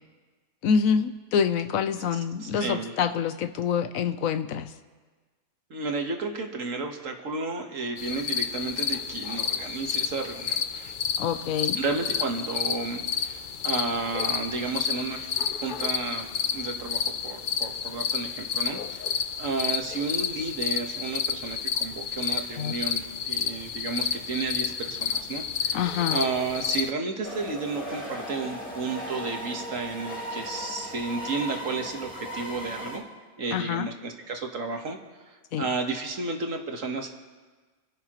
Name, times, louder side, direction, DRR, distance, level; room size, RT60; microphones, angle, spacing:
voice 1, 0.6-4.7 11.2-11.8 22.6-22.7 25.7-26.2 33.5-33.9 35.5-35.7, left 7 dB, 75° left, 10 dB, 1.1 m, -26 dB
voice 2, 2.4-2.9 5.7-10.9 11.8-25.8 26.1-33.0 33.4-35.0 35.2-37.1, right 4 dB, 65° right, 3 dB, 1.6 m, -32 dB
sound 1, 8.0-26.9, left 7 dB, 55° left, 0.5 m, -30 dB
sound 2, 27.2-33.0, equal, 10° left, 2.8 m, -37 dB
28.5 x 10.5 x 3.0 m, 1.4 s
omnidirectional pair, 1.5 m